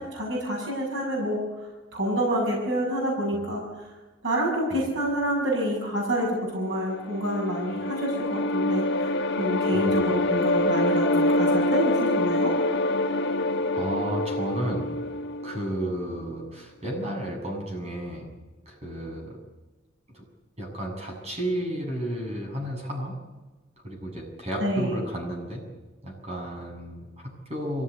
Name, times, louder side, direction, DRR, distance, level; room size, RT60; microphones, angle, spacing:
voice 1, 0.0-1.4 1.9-3.9 4.2-9.1 9.4-12.5 24.6-25.0, right 1 dB, 70° right, -2 dB, 7.1 m, -27 dB
sound 1, 6.9-16.1, left 1 dB, 65° left, 1.8 m, -25 dB
voice 2, 9.7-10.1 13.7-14.9 15.4-18.3 18.7-19.4 20.1-20.2 20.6-23.1 23.8-25.6 26.0-27.8, right 1 dB, 35° right, 1 dB, 7.4 m, -32 dB
22.5 x 17.0 x 9.7 m, 1.2 s
head